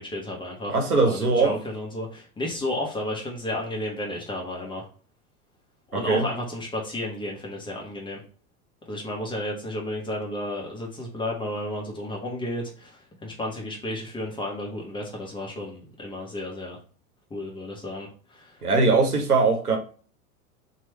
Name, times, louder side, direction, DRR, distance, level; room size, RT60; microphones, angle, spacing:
voice 1, 0.0-0.8 1.0-4.9 5.9-8.2 8.9-16.8 17.3-18.7, left 1 dB, 10° left, 0.7 m, -32 dB
voice 2, 0.7-1.6 5.9-6.2 18.6-19.8, right 3 dB, 85° right, 0.8 m, -21 dB
3.0 x 2.3 x 2.9 m
figure-of-eight pair, 85°, 44 cm